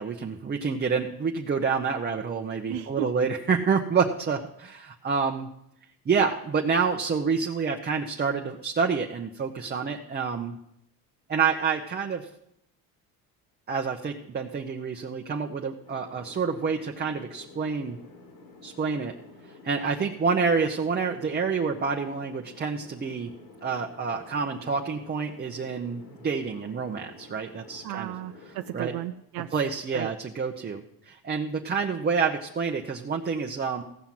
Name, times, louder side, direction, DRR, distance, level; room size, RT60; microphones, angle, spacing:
voice 1, 0.0-5.5 6.1-10.6 11.3-12.3 13.7-18.0 18.6-19.1 19.6-23.3 23.6-28.1 28.7-28.9 29.5-33.8, right 5 dB, 25° right, 2 dB, 0.9 m, -28 dB
voice 2, 2.7-3.1 27.8-29.5 29.9-30.1, right 15 dB, 70° right, 9 dB, 0.5 m, -34 dB
sound 1, 15.8-29.1, left 3 dB, 80° left, 3.6 m, -50 dB
16.0 x 5.8 x 7.5 m, 0.78 s
cardioid pair, 120°, 37 cm